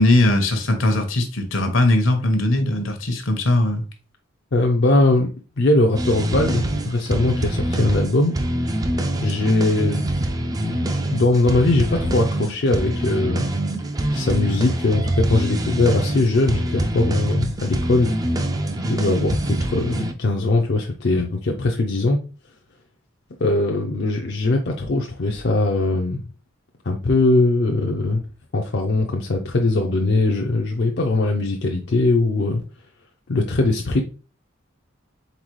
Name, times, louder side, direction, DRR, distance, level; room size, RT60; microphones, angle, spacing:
voice 1, 0.0-3.8, left 1 dB, 75° left, 0.9 m, -19 dB
voice 2, 4.5-5.3 5.6-8.4 9.2-10.1 10.6-13.4 14.1-18.1 18.9-22.2 23.4-26.2 26.9-28.2 28.5-32.6 33.3-34.0, left 2 dB, 55° left, 0.5 m, -20 dB
sound 1, 6.0-20.1, right 1 dB, 20° right, 0.4 m, -25 dB
4.0 x 3.9 x 3.1 m
head